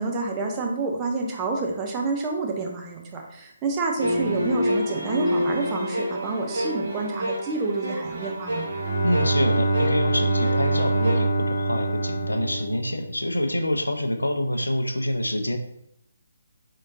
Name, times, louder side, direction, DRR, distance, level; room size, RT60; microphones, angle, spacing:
voice 1, 0.0-8.7, right 3 dB, 15° right, 1 dB, 0.6 m, -28 dB
sound 1, 4.0-11.2, equal, 65° right, 1.2 m, -28 dB
Bowed string instrument, 8.5-13.5, right 2 dB, 90° right, 1.5 m, -25 dB
voice 2, 9.0-15.6, left 1 dB, 75° left, 6 dB, 0.5 m, -26 dB
3.7 x 3.5 x 2.6 m, 0.76 s
figure-of-eight pair, 145°, 0 cm